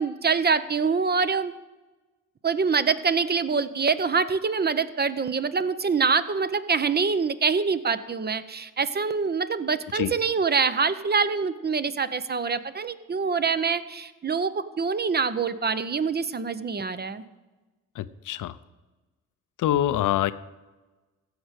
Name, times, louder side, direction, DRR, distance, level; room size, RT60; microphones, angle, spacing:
voice 1, 0.0-1.5 2.4-17.2, right 5 dB, 30° right, 13 dB, 0.7 m, -25 dB
voice 2, 18.0-18.6 19.6-20.3, left 12 dB, 65° left, 15 dB, 0.6 m, -25 dB
15.0 x 5.2 x 6.5 m, 1.2 s
supercardioid pair, 60°, 34 cm